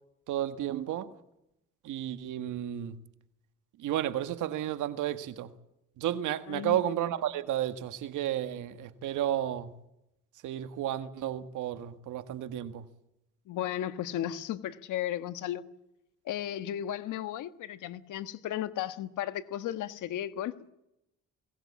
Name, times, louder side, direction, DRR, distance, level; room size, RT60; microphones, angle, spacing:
voice 1, 0.3-1.1 1.8-3.0 3.8-5.5 6.0-9.7 10.4-12.9, right 11 dB, 85° right, 1.7 m, -32 dB
voice 2, 6.5-6.8 13.5-15.6 16.2-20.7, left 11 dB, 85° left, 1.5 m, -35 dB
22.5 x 18.5 x 8.5 m
cardioid pair, 90°, 30 cm